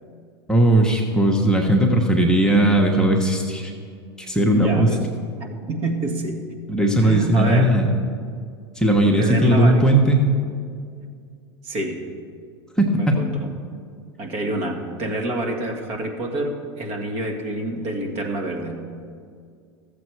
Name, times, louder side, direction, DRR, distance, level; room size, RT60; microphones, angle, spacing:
voice 1, 0.5-3.7 4.2-4.9 6.7-7.9 8.8-10.2 12.8-13.2, right 1 dB, 5° left, -1 dB, 1.1 m, -17 dB
voice 2, 4.5-5.1 5.4-6.4 7.0-7.7 9.2-9.8 11.6-12.0 13.0-13.5 14.2-18.8, right 2 dB, 45° right, 3 dB, 1.7 m, -27 dB
13.5 x 7.5 x 4.7 m, 2.2 s
hypercardioid pair, 90°, 14 cm